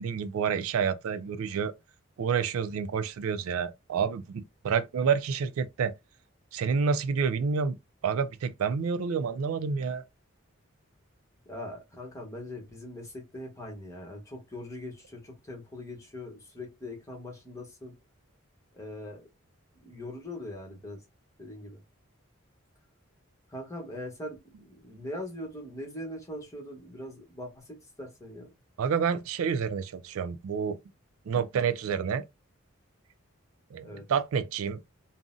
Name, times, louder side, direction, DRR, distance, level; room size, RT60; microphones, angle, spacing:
voice 1, 0.0-1.7 2.2-5.9 6.5-7.8 8.0-10.0 24.9-25.0 28.8-30.8 31.3-32.2 33.7-34.8, right 6 dB, 85° right, 0.4 m, -29 dB
voice 2, 11.5-17.9 18.7-19.2 19.8-21.0 21.4-21.8 23.5-24.4 24.6-28.5 33.8-34.0, left 1 dB, 15° left, 0.9 m, -41 dB
3.7 x 2.0 x 2.5 m
head